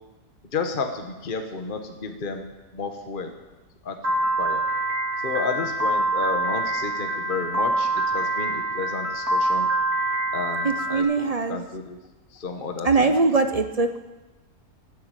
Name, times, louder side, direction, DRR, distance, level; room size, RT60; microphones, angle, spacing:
voice 1, 0.5-2.5 2.7-3.3 3.8-4.0 4.4-4.6 5.2-9.7 10.3-12.0 12.3-13.2, left 4 dB, 35° left, 5 dB, 1.3 m, -31 dB
Piano, 4.0-11.0, right 2 dB, 70° right, 3.0 m, -25 dB
voice 2, 10.6-11.6 12.8-14.0, right 3 dB, 55° right, 9 dB, 0.4 m, -22 dB
15.0 x 9.6 x 9.0 m, 1.1 s
omnidirectional pair, 1.7 m